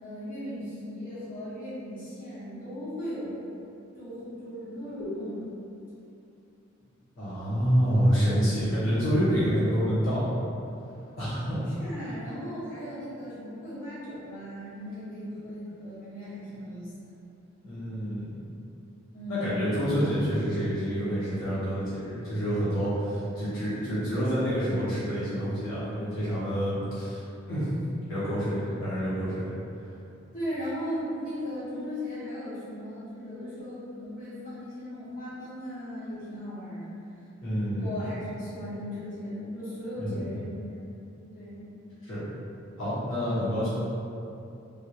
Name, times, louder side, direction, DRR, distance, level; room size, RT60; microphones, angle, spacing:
voice 1, 0.0-3.4 3.9-5.4 11.8-16.9 19.1-19.7 30.3-36.9 37.7-41.1 41.3-41.7 43.2-43.4, equal, 45° left, -13 dB, 1.4 m, -37 dB
voice 2, 7.2-10.2 11.2-11.7 17.6-18.4 19.3-27.2 27.5-27.7 28.1-29.5 37.4-37.9 39.9-40.3 42.1-42.2 42.8-43.7, equal, 90° left, -12 dB, 1.3 m, -27 dB
3.6 x 2.5 x 2.9 m, 2.7 s
head